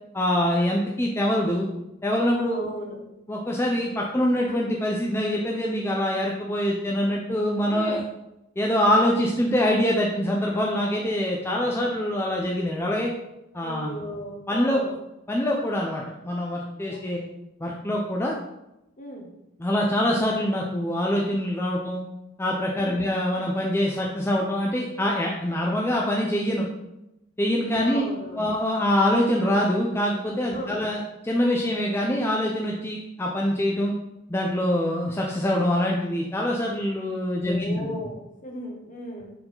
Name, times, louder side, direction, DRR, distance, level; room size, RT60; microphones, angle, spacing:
voice 1, 0.1-1.7 2.0-2.7 3.3-8.0 8.6-13.1 13.5-13.9 14.5-14.8 15.3-17.2 17.6-18.3 19.6-22.0 22.4-26.7 27.4-28.1 28.3-33.9 34.3-37.9, left 1 dB, 15° left, -2 dB, 0.6 m, -24 dB
voice 2, 2.5-3.0 7.7-7.9 13.6-14.9 16.8-17.3 19.0-19.3 22.8-23.0 27.8-28.5 30.5-30.8 37.4-39.3, equal, 40° left, 1 dB, 1.2 m, -36 dB
5.8 x 4.7 x 3.8 m, 0.90 s
head